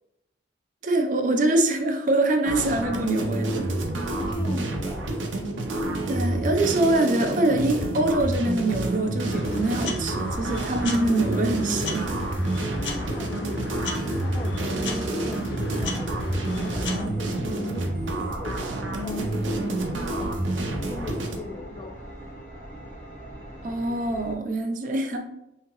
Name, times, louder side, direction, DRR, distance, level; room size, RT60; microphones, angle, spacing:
voice 1, 0.8-3.7 6.1-12.1 23.6-25.2, right 2 dB, 45° right, 4 dB, 0.4 m, -24 dB
sound 1, 2.4-21.4, right 1 dB, 90° right, 0.6 m, -29 dB
voice 2, 4.1-5.1 12.7-20.4 20.7-22.0, left 3 dB, 25° left, 2 dB, 0.3 m, -40 dB
sound 2, 9.2-17.0, left 2 dB, 80° left, 0.6 m, -34 dB
sound 3, 13.8-24.4, equal, 45° left, 0.8 m, -43 dB
3.5 x 2.8 x 2.9 m, 0.87 s
head